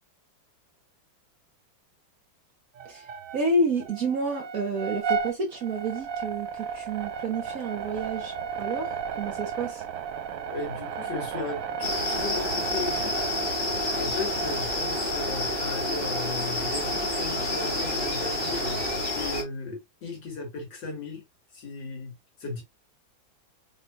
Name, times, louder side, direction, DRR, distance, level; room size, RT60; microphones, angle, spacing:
sound 1, 2.7-3.5 3.8-19.0, right 7 dB, 90° right, 0.7 m, -35 dB
voice 1, 2.8-8.9 9.2-9.8, right 2 dB, 50° right, 1.3 m, -29 dB
voice 2, 10.5-13.2 13.8-21.2 21.5-22.6, left 3 dB, 65° left, 3.0 m, -36 dB
sound 2, 11.8-19.4, left 2 dB, 25° left, 1.7 m, -29 dB
4.9 x 3.6 x 2.6 m
omnidirectional pair, 2.2 m